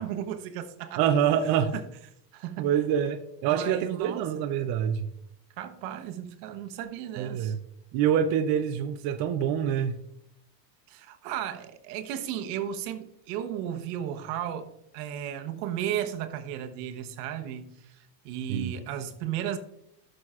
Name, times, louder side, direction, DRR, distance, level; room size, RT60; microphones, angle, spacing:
voice 1, 0.0-1.0 1.3-1.8 2.3-2.7 3.5-4.3 5.6-7.5 10.9-19.6, right 10 dB, 70° right, 7 dB, 1.1 m, -35 dB
voice 2, 1.0-1.7 2.6-5.1 7.2-7.6 7.9-9.9 18.5-18.8, right 9 dB, 50° right, 7 dB, 0.6 m, -26 dB
11.0 x 6.5 x 2.4 m, 0.76 s
supercardioid pair, 110°, 50 cm